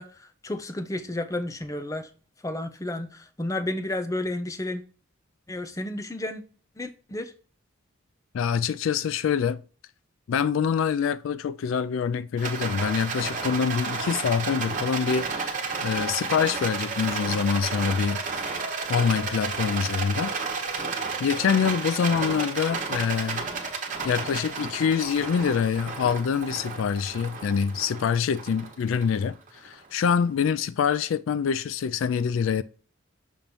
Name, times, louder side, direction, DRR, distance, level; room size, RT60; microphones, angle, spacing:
voice 1, 0.0-2.1 2.4-4.8 5.5-6.4 6.8-7.3, left 1 dB, 15° left, 0.5 m, -32 dB
voice 2, 8.3-9.6 10.3-18.2 18.9-20.3 21.2-23.4 24.0-29.4 29.6-32.6, left 6 dB, 70° left, 0.3 m, -25 dB
Rattle, 12.4-29.7, right 4 dB, 35° right, 1.3 m, -32 dB
6.9 x 3.0 x 5.2 m
head